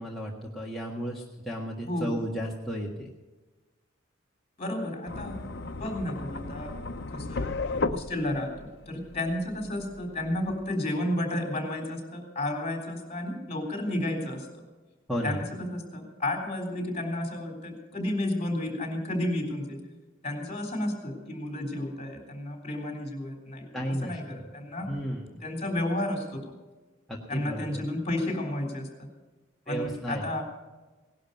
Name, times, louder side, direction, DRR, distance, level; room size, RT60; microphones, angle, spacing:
voice 1, 0.0-3.1 15.1-15.4 23.7-24.4 24.9-25.4 27.1-27.8 29.7-30.2, equal, ahead, -4 dB, 1.5 m, -33 dB
voice 2, 1.9-2.2 4.6-5.4 5.8-6.8 7.1-14.5 15.2-19.8 20.2-25.0 25.4-26.6 27.3-29.1 29.7-30.4, left 1 dB, 30° left, 3 dB, 3.6 m, -32 dB
sound 1, 5.1-10.7, left 3 dB, 55° left, 0.9 m, -35 dB
18.0 x 11.5 x 5.3 m, 1.2 s
head